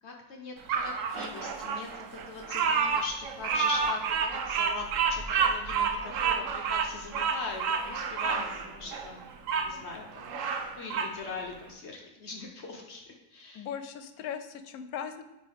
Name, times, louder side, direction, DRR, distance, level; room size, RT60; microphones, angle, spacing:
voice 1, 0.0-9.2 9.7-10.3 10.8-13.0 13.3-13.6, left 3 dB, 55° left, 1 dB, 1.0 m, -41 dB
Bird vocalization bird call bird song, 0.7-9.7 10.1-11.2, right 6 dB, 70° right, 1.0 m, -29 dB
voice 2, 13.5-15.2, left 8 dB, 90° left, 10 dB, 1.1 m, -38 dB
8.9 x 3.1 x 3.5 m, 1.0 s
omnidirectional pair, 1.5 m